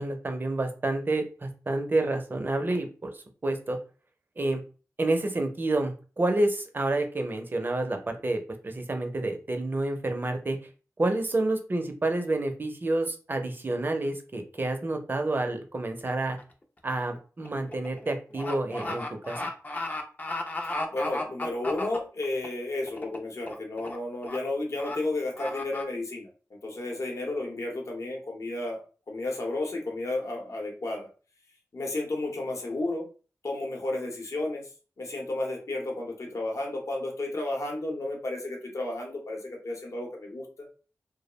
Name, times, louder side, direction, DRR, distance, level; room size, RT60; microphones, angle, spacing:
voice 1, 0.0-3.8 4.4-4.6 5.0-10.6 11.0-16.4 16.8-19.4, right 2 dB, 35° right, 5 dB, 0.5 m, -29 dB
sound 1, 16.4-16.6 17.0-22.5 22.9-23.2 23.5-24.0 24.2-24.4 24.8-25.0 25.4-25.8, left 2 dB, 30° left, 0.4 m, -34 dB
voice 2, 20.7-28.8 29.1-31.1 31.7-33.0 33.4-34.7 35.0-40.7, left 2 dB, 60° left, 0 dB, 0.8 m, -32 dB
2.3 x 2.0 x 2.9 m, 0.36 s
wide cardioid pair, 75°, 6 cm